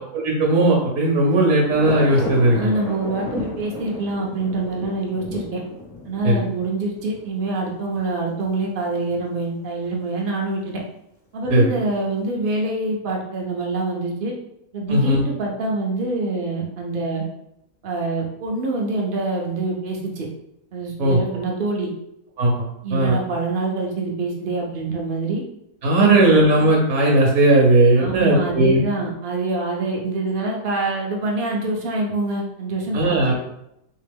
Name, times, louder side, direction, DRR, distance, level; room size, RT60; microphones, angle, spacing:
voice 1, 0.1-2.7 6.2-6.4 11.5-11.7 14.9-15.2 21.0-21.2 22.4-22.5 22.9-23.2 25.8-28.8 32.9-33.3, right 2 dB, 60° right, -2 dB, 0.9 m, -17 dB
sound 1, 1.7-8.5 8.8-8.9 9.1-9.2 10.2-10.3, left 1 dB, 65° left, 0.3 m, -33 dB
voice 2, 2.5-5.6 6.0-10.8 11.3-14.3 14.7-17.2 17.8-20.3 20.7-21.9 22.8-25.4 26.0-26.1 28.0-33.2, right 2 dB, 80° right, -1 dB, 0.4 m, -25 dB
3.3 x 2.8 x 3.4 m, 0.81 s
omnidirectional pair, 1.8 m